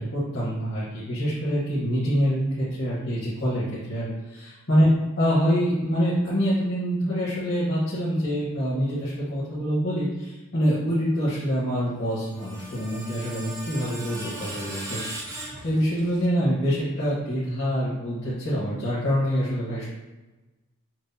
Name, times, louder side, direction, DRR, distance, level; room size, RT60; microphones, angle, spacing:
voice 1, 0.0-4.9 5.1-15.2 15.6-19.9, equal, 55° left, -10 dB, 1.1 m, -25 dB
Screech, 12.0-16.3, right 1 dB, 15° right, 0.4 m, -38 dB
6.0 x 2.0 x 2.6 m, 1.1 s
head